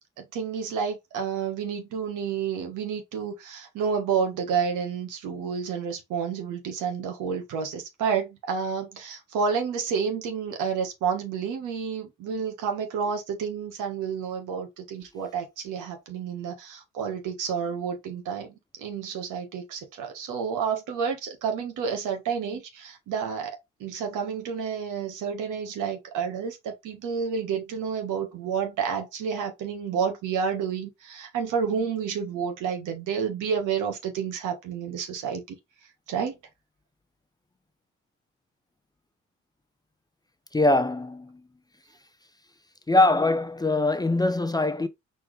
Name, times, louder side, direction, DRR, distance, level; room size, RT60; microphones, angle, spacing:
voice 1, 0.2-35.4 36.1-36.3, right 6 dB, 90° right, 1.4 m, -30 dB
voice 2, 40.5-41.4 42.9-44.9, left 2 dB, 15° left, 0.5 m, -22 dB
4.4 x 3.3 x 3.2 m
cardioid pair, 90°, 30 cm